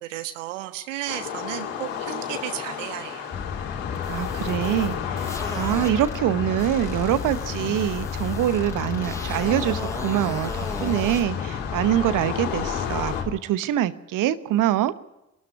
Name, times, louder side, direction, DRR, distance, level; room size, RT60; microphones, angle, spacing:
voice 1, 0.0-3.3, right 14 dB, 75° right, 9 dB, 1.4 m, -33 dB
sound 1, 1.1-13.2, left 8 dB, 60° left, 2.9 m, -33 dB
sound 2, 3.3-13.4, left 6 dB, 30° left, 1.2 m, -33 dB
sound 3, 3.9-6.2 6.6-11.2, left 2 dB, 5° left, 5.9 m, -37 dB
voice 2, 4.1-14.9, right 12 dB, 55° right, 14 dB, 1.1 m, -24 dB
24.5 x 13.0 x 9.7 m, 0.94 s
figure-of-eight pair, 40°, 38 cm